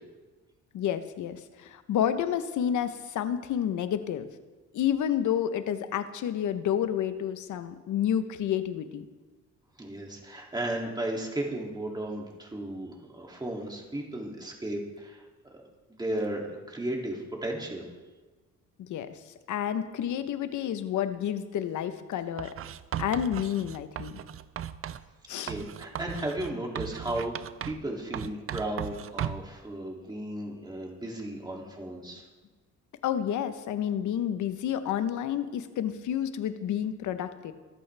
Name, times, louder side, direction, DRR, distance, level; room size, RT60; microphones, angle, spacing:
voice 1, 0.7-4.3 4.7-9.0 18.8-19.2 19.5-22.5 23.0-24.2 25.3-25.5 33.0-37.5, left 9 dB, 75° left, 10 dB, 1.0 m, -30 dB
voice 2, 9.8-15.2 15.5-15.6 15.9-17.8 25.5-32.2, right 1 dB, 15° right, -1 dB, 2.7 m, -35 dB
Writing, 22.4-25.1 25.5-27.9 28.1-29.5, right 10 dB, 50° right, 0.5 m, -37 dB
24.5 x 8.5 x 3.4 m, 1.3 s
cardioid pair, 90°, 30 cm